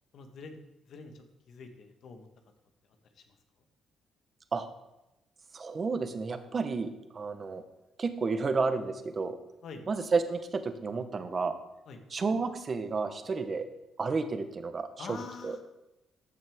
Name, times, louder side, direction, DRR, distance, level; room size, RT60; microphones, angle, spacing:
voice 1, 0.1-0.6 0.9-2.3 3.1-3.4 9.6-9.9 11.9-12.0 15.0-15.6, left 4 dB, 70° left, 5 dB, 1.3 m, -45 dB
voice 2, 5.5-7.6 8.0-9.4 9.9-11.5 12.1-13.7 14.0-15.2 15.4-15.6, right 4 dB, 40° right, 9 dB, 1.0 m, -31 dB
14.0 x 6.1 x 3.6 m, 0.96 s
cardioid pair, 90°, 0 cm